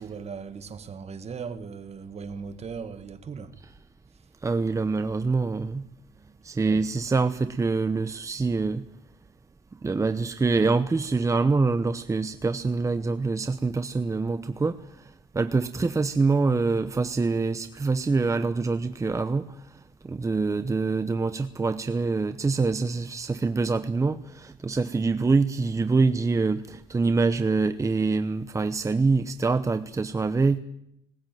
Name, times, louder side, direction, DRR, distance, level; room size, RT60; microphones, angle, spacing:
voice 1, 0.0-3.5 4.1-4.3 6.6-6.9, right 5 dB, 40° right, 1.7 m, -38 dB
voice 2, 4.4-5.9 6.4-8.8 9.8-19.6 20.0-30.6, right 4 dB, 20° right, 0.9 m, -25 dB
20.0 x 19.0 x 9.3 m
cardioid pair, 110°, 17 cm